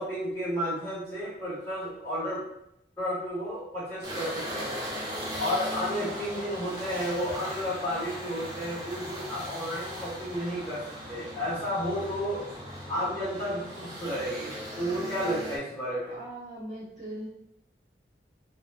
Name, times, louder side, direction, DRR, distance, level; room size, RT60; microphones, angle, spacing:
voice 1, 0.0-2.4 3.0-4.9 5.4-12.4 12.9-16.2, equal, 15° left, -10 dB, 1.4 m, -32 dB
sound 1, 4.0-15.6, equal, 20° right, 0.5 m, -38 dB
voice 2, 16.1-17.3, right 1 dB, 40° right, -8 dB, 1.0 m, -40 dB
3.3 x 2.1 x 2.3 m, 0.77 s
head